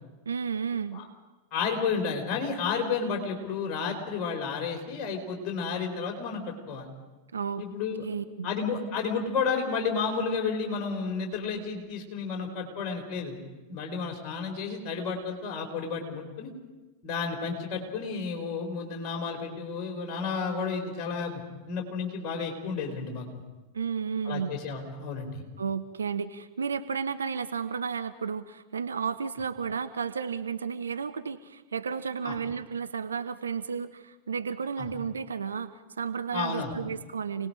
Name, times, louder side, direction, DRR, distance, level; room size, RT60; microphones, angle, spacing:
voice 1, 0.3-1.0 7.3-7.6 8.0-8.5 23.7-24.6 25.6-37.5, right 6 dB, 70° right, 11 dB, 0.7 m, -32 dB
voice 2, 1.5-6.9 7.6-8.0 8.4-13.4 13.7-16.5 17.0-21.4 21.7-23.3 24.2-25.4 32.2-32.4 34.8-34.9 36.3-36.7, left 5 dB, 35° left, 2 dB, 4.5 m, -31 dB
28.5 x 19.5 x 5.0 m, 1.2 s
figure-of-eight pair, 90°, 0 cm